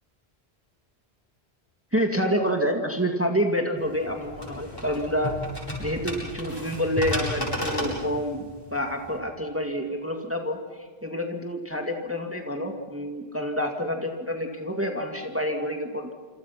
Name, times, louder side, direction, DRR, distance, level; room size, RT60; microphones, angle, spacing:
voice 1, 1.9-5.3 5.8-10.6 11.0-16.1, equal, 10° right, 3 dB, 2.0 m, -28 dB
sound 1, 3.8-9.2, left 1 dB, 20° left, 8.2 m, -33 dB
27.5 x 27.0 x 5.9 m, 1.5 s
omnidirectional pair, 1.1 m